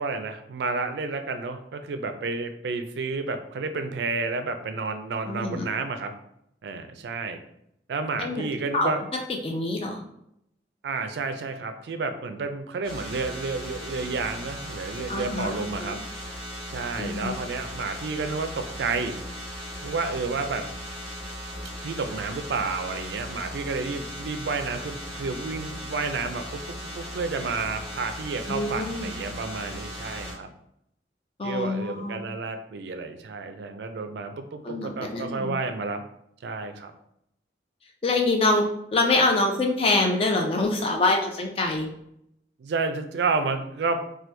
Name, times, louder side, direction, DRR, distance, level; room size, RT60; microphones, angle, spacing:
voice 1, 0.0-6.1 6.6-7.4 7.9-9.0 10.8-16.0 16.7-19.2 19.8-20.6 21.8-30.5 31.4-36.0 36.4-36.9 42.6-44.0, right 4 dB, 70° right, 8 dB, 0.3 m, -30 dB
voice 2, 5.3-5.7 8.2-8.4 8.7-8.9 9.4-10.1 15.1-15.5 15.9-16.0 17.0-17.3 28.5-29.1 31.4-32.2 34.6-35.5 38.0-38.7 38.9-41.9, left 2 dB, 30° left, 2 dB, 0.4 m, -25 dB
sound 1, 12.8-30.3, equal, 5° left, 0.9 m, -37 dB
2.9 x 2.2 x 3.2 m, 0.75 s
head